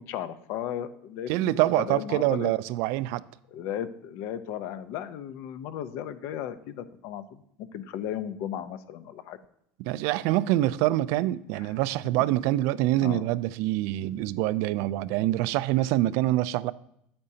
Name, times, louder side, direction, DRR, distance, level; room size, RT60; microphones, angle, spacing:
voice 1, 0.0-2.5 3.5-7.4 7.7-9.4 11.6-11.7 13.0-13.2, left 10 dB, 60° left, 0.6 m, -35 dB
voice 2, 1.3-3.2 9.8-16.7, right 15 dB, 65° right, 0.3 m, -25 dB
8.7 x 8.7 x 2.8 m
cardioid pair, 150°, 5 cm